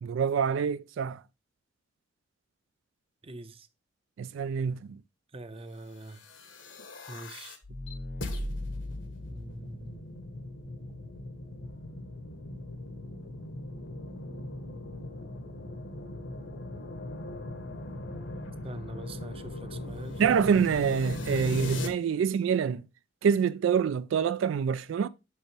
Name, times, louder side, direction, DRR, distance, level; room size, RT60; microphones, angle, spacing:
voice 1, 0.0-1.2 4.2-5.0 20.2-22.8 23.2-25.1, right 7 dB, 85° right, 0.3 m, -26 dB
voice 2, 3.2-3.7 5.3-6.2 7.1-7.6 9.3-10.0 18.6-20.2 22.1-22.2, right 2 dB, 30° right, 0.6 m, -44 dB
sound 1, 6.1-21.9, left 1 dB, 75° left, 1.2 m, -39 dB
6.6 x 5.8 x 3.2 m
head